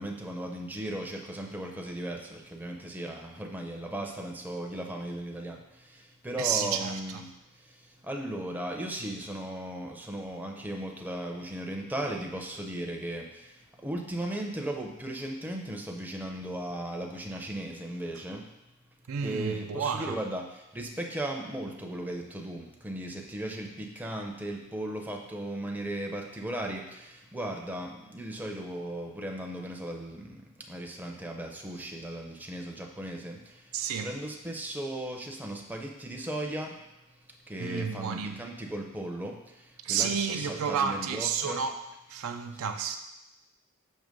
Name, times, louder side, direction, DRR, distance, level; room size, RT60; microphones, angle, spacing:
voice 1, 0.0-18.5 19.2-36.8 37.1-41.6, right 1 dB, 10° right, 0.5 m, -37 dB
voice 2, 6.4-7.2 19.1-20.2 33.7-34.1 37.6-38.4 39.8-41.8 42.1-43.0, right 7 dB, 65° right, 0.4 m, -31 dB
6.4 x 2.9 x 5.1 m
head